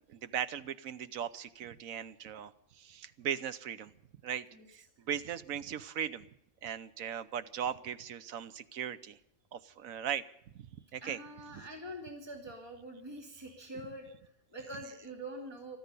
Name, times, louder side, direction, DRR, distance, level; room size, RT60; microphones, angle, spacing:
voice 1, 0.1-2.5 2.8-3.9 4.2-6.3 6.6-9.2 9.5-10.2 10.9-11.2 11.5-11.6, right 9 dB, 85° right, 14 dB, 1.2 m, -38 dB
voice 2, 4.5-5.0 10.7-15.8, right 1 dB, 20° right, 1 dB, 2.7 m, -46 dB
14.5 x 13.0 x 6.8 m, 0.77 s
omnidirectional pair, 1.4 m